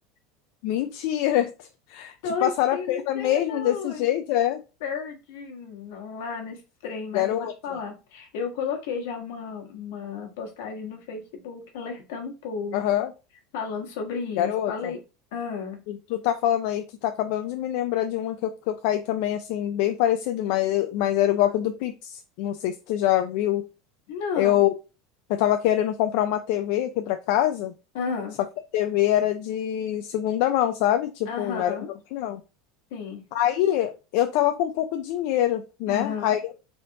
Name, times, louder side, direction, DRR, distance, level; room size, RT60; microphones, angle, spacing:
voice 1, 0.6-2.1 2.4-4.6 7.1-7.5 12.7-13.1 14.4-14.9 15.9-23.7 24.4-24.7 25.3-27.7 28.7-31.8 32.1-32.4 33.3-36.4, left 12 dB, 50° left, 7 dB, 0.3 m, -24 dB
voice 2, 2.2-4.0 4.8-12.9 13.5-15.0 15.3-15.8 21.4-21.5 24.1-24.6 27.9-28.4 31.3-31.9 32.9-33.2 35.9-36.3, left 5 dB, 70° left, 2 dB, 1.3 m, -33 dB
4.0 x 3.4 x 2.7 m, 0.30 s
supercardioid pair, 175°, 0 cm